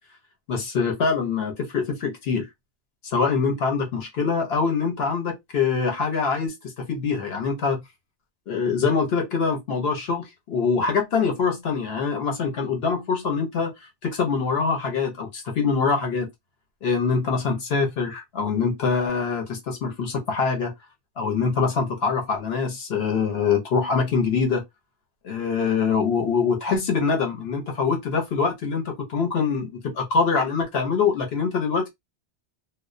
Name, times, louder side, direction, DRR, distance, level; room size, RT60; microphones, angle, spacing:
voice 1, 0.5-2.5 3.0-7.8 8.5-16.3 16.8-20.7 21.2-24.6 25.2-31.9, left 5 dB, 65° left, 1.0 m, -24 dB
2.3 x 2.2 x 2.4 m
omnidirectional pair, 1.2 m